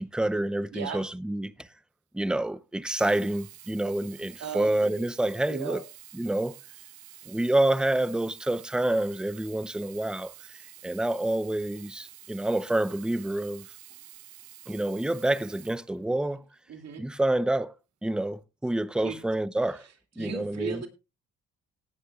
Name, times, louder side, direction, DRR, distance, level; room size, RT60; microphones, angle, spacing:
voice 1, 0.0-1.7 2.1-5.8 6.1-6.5 7.3-13.7 14.7-16.4 17.0-17.7 18.0-19.8 20.2-20.8, right 1 dB, 5° right, 0.6 m, -28 dB
Sink (filling or washing), 2.7-16.5 17.2-17.3, right 13 dB, 80° right, 1.0 m, -49 dB
voice 2, 4.4-5.1 5.5-5.8 16.7-17.0 19.0-19.2 20.2-20.9, right 7 dB, 60° right, 2.6 m, -36 dB
18.0 x 9.5 x 2.4 m
cardioid pair, 90°, 30 cm